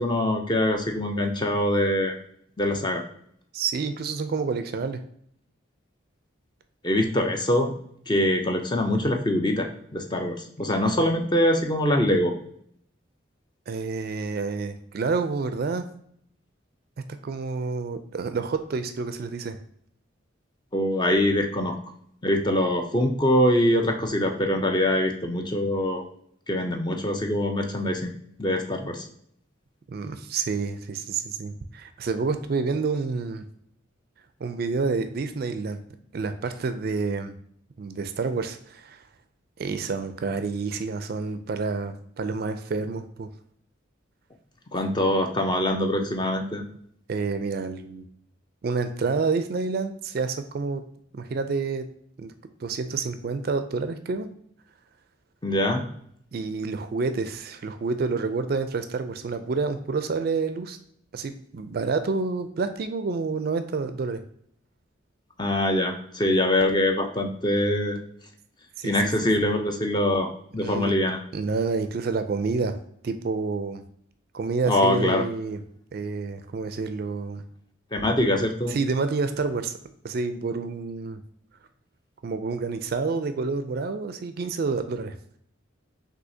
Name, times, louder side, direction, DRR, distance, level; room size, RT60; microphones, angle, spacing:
voice 1, 0.0-2.1 2.6-3.0 6.8-7.7 8.1-12.3 20.7-21.8 22.2-26.0 26.5-28.1 28.4-29.1 44.7-46.6 55.4-55.8 65.4-68.0 68.8-71.2 74.7-75.2 77.9-78.7, left 1 dB, 20° left, 4 dB, 0.5 m, -23 dB
voice 2, 3.5-5.0 13.7-15.9 17.2-19.6 29.9-33.4 34.4-35.8 36.1-37.4 37.8-39.0 39.6-43.3 47.1-48.1 48.6-50.8 51.1-51.9 52.2-52.3 52.6-54.3 56.3-60.8 61.1-64.2 68.8-69.1 70.6-70.9 71.3-72.8 73.0-73.8 74.3-75.6 75.9-77.4 78.7-79.8 80.0-81.2 82.2-85.2, right 4 dB, 50° right, 10 dB, 0.3 m, -28 dB
6.2 x 2.7 x 2.7 m, 0.67 s
head